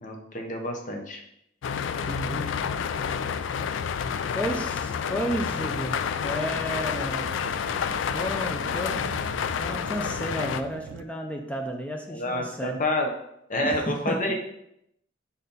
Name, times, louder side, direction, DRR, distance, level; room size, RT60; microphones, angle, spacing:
voice 1, 0.0-1.2 12.1-13.1 13.5-14.3, left 1 dB, 45° left, 2 dB, 1.0 m, -28 dB
sound 1, 1.6-10.6, left 7 dB, 75° left, 0.3 m, -29 dB
voice 2, 2.0-2.5 4.3-7.4 8.1-9.1 9.6-12.8 13.6-14.3, equal, 5° left, 2 dB, 0.5 m, -32 dB
sound 2, 5.5-11.0, right 5 dB, 80° right, 0.3 m, -43 dB
4.2 x 4.2 x 5.4 m, 0.77 s
head